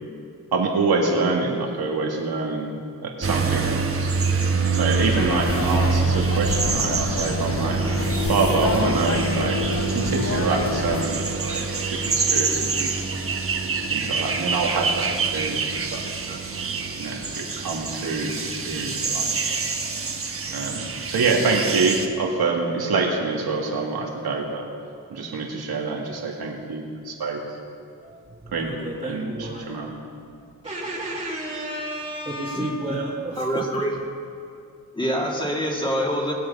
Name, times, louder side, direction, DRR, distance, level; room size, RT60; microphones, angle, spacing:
voice 1, 0.5-2.8 3.0-4.1 4.7-9.6 9.9-11.6 11.9-13.2 13.9-16.0 16.3-16.4 17.0-19.6 20.5-24.7 25.1-27.4 28.5-28.7 29.0-29.9, right 3 dB, 80° right, 0 dB, 2.2 m, -26 dB
sound 1, 3.2-22.1, right 4 dB, 35° right, 1.2 m, -25 dB
sound 2, 5.2-11.1, left 6 dB, 40° left, 0.6 m, -30 dB
voice 2, 26.4-26.8 27.2-27.4 28.0-33.9, right 1 dB, 15° right, -6 dB, 2.0 m, -33 dB
voice 3, 33.4-34.0 34.9-36.3, equal, 15° left, -2 dB, 2.5 m, -25 dB
20.0 x 7.9 x 5.5 m, 2.5 s
wide cardioid pair, 110°, 37 cm